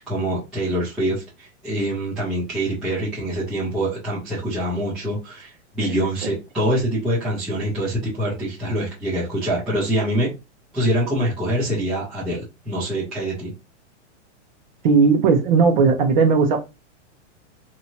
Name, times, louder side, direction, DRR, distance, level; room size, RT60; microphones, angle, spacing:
voice 1, 0.0-10.3 10.7-13.5, right 1 dB, ahead, 0.4 m, -25 dB
voice 2, 14.8-16.6, right 5 dB, 40° right, 0.9 m, -16 dB
2.8 x 2.7 x 4.4 m
supercardioid pair, 175°, 36 cm